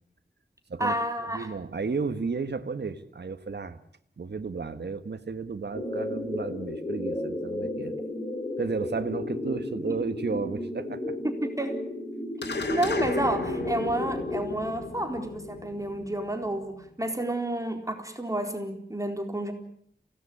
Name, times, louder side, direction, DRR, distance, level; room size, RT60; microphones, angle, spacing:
voice 1, 0.8-1.5 11.2-11.8 12.7-19.5, right 1 dB, 20° right, 4 dB, 4.3 m, -30 dB
voice 2, 1.3-3.8 4.2-8.0 8.6-11.1, right 4 dB, 75° right, 9 dB, 1.6 m, -33 dB
sound 1, 5.7-14.4, left 1 dB, 25° left, 3.6 m, -33 dB
sound 2, 12.4-17.0, left 3 dB, 80° left, 2.7 m, -35 dB
27.5 x 18.5 x 8.6 m, 0.67 s
wide cardioid pair, 70°, 18 cm